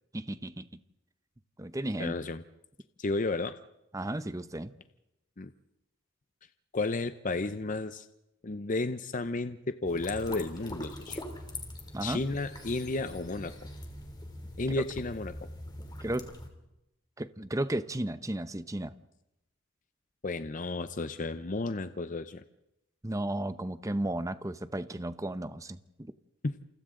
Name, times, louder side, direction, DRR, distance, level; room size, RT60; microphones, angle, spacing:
voice 1, 0.1-0.8 1.6-2.1 3.9-4.7 11.9-12.2 16.0-16.3 17.2-19.0 23.0-26.1, right 1 dB, 15° right, 0.7 m, -34 dB
voice 2, 2.0-2.4 3.0-3.5 5.4-5.5 6.7-8.0 8.4-11.2 12.0-13.5 14.6-15.3 20.2-22.4 26.4-26.5, left 3 dB, 40° left, 0.7 m, -32 dB
sound 1, 9.8-16.5, left 1 dB, 20° left, 3.0 m, -42 dB
29.0 x 28.5 x 3.8 m
head